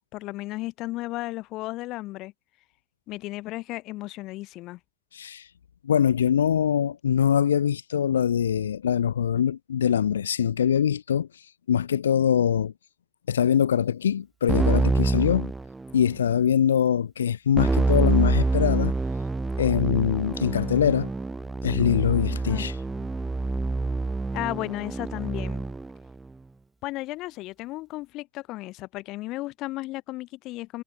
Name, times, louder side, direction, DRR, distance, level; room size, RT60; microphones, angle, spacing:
voice 1, 0.0-2.3 3.1-4.8 22.3-22.7 24.3-25.7 26.8-30.8, left 19 dB, 55° left, 1.4 m, -34 dB
voice 2, 5.1-5.5 5.8-11.4 11.7-12.7 13.3-15.5 15.9-18.9 19.6-21.1 21.6-22.7, left 8 dB, 85° left, 1.1 m, -23 dB
Keyboard (musical), 14.5-16.2 17.6-25.9, right 3 dB, 15° right, 0.4 m, -26 dB
hypercardioid pair, 75°, 0 cm